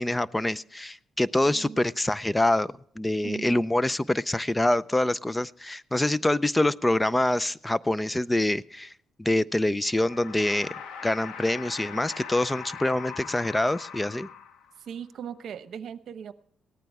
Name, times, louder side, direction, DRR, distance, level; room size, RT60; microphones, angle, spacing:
voice 1, 0.0-2.7 3.0-8.9 9.2-10.7 11.0-14.3, left 1 dB, 10° left, 19 dB, 0.4 m, -25 dB
voice 2, 1.4-1.9 3.2-3.6 14.8-16.3, right 8 dB, 65° right, 13 dB, 0.9 m, -39 dB
sound 1, 9.8-14.9, left 7 dB, 85° left, 1.4 m, -41 dB
18.0 x 13.5 x 3.5 m, 0.63 s
cardioid pair, 90°, 0 cm